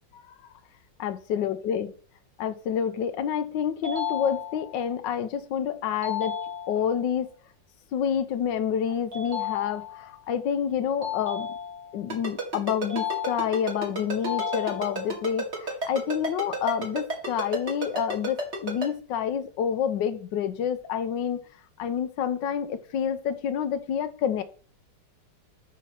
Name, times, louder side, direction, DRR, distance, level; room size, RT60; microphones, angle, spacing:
voice 1, 1.0-1.9 2.4-6.3 6.7-7.3 7.9-11.5 11.9-21.4 21.8-24.4, left 8 dB, 85° left, 1.5 m, -28 dB
sound 1, 3.8-4.9 6.0-7.0 9.1-10.1 11.0-12.1 12.9-13.8 14.3-15.3, left 8 dB, 85° right, 3.0 m, -33 dB
Ringtone, 12.1-18.9, right 3 dB, 40° right, 2.5 m, -31 dB
6.1 x 6.0 x 5.8 m
omnidirectional pair, 1.9 m